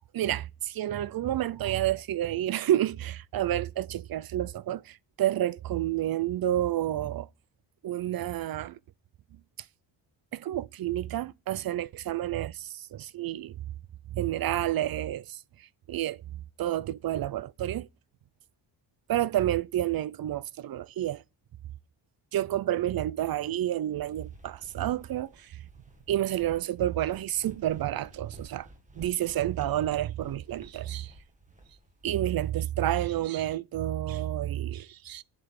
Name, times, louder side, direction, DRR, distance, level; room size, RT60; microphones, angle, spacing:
voice 1, 0.1-7.3 7.8-8.8 10.3-13.6 14.1-15.4 15.9-17.9 19.1-21.2 22.3-25.6 26.1-28.7 28.9-31.1 32.0-35.2, right 12 dB, 50° right, 0.5 m, -30 dB
sound 1, 24.0-32.5, right 1 dB, 15° right, 1.6 m, -53 dB
7.7 x 6.1 x 6.9 m
wide cardioid pair, 155°, 45 cm